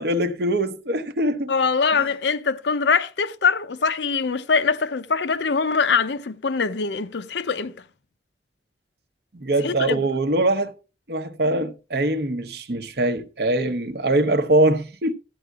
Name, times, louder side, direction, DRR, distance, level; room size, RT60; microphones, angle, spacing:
voice 1, 0.0-1.5 9.3-10.7 11.1-15.1, right 1 dB, 60° right, 0.8 m, -22 dB
voice 2, 1.5-7.7 9.6-10.0, left 5 dB, 70° left, 0.6 m, -23 dB
13.5 x 9.2 x 2.3 m
head